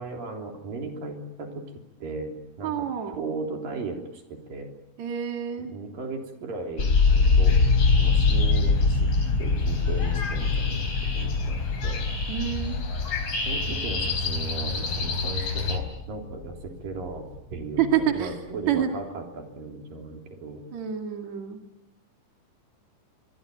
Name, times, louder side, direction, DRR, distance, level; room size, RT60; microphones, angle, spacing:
voice 1, 0.0-1.7 2.0-2.9 3.1-4.7 5.6-7.6 7.9-9.1 9.4-12.0 13.4-20.6, right 3 dB, 80° right, 3 dB, 5.2 m, -36 dB
voice 2, 2.6-3.2 5.0-5.7 12.3-12.8 17.8-18.3 18.7-18.9 20.7-21.6, right 9 dB, 60° right, 3 dB, 3.4 m, -27 dB
sound 1, 6.8-15.8, left 3 dB, 60° left, 5.3 m, -32 dB
sound 2, 6.8-16.8 17.1-17.8, left 4 dB, 40° left, 1.3 m, -24 dB
25.0 x 22.5 x 9.2 m, 0.93 s
omnidirectional pair, 3.9 m